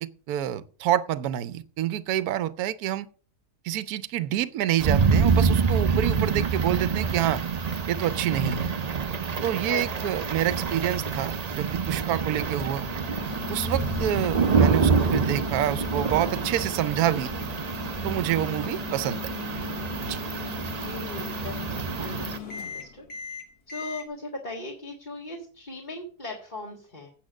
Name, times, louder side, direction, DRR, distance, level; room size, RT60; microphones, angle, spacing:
voice 1, 0.0-3.1 3.6-7.4 7.9-8.7 9.4-12.9 13.5-17.3 18.0-19.3 20.0-20.2, right 12 dB, 75° right, 1.1 m, -27 dB
sound 1, 4.8-22.4, right 5 dB, 45° right, 0.5 m, -27 dB
voice 2, 9.7-10.8 18.7-18.9 20.8-23.1 23.7-27.1, left 2 dB, 30° left, 1.9 m, -39 dB
Microwave oven, 12.5-24.1, left 9 dB, 75° left, 2.1 m, -38 dB
8.5 x 7.8 x 6.2 m
omnidirectional pair, 1.6 m